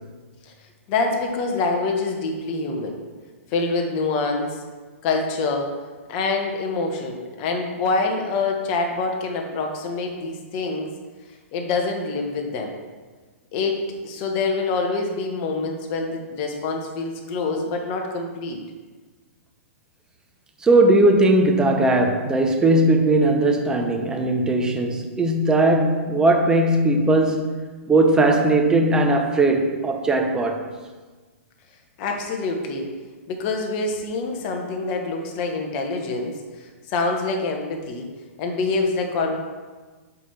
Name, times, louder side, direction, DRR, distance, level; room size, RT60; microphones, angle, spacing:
voice 1, 0.9-3.0 3.5-4.6 5.0-5.7 6.1-10.9 11.5-12.7 13.5-18.6 32.0-32.9 33.3-38.1 38.4-39.4, left 3 dB, 35° left, 1.2 m, -26 dB
voice 2, 20.6-30.6, right 2 dB, 10° right, 0.7 m, -19 dB
8.2 x 3.6 x 5.8 m
hypercardioid pair, 145°, 8 cm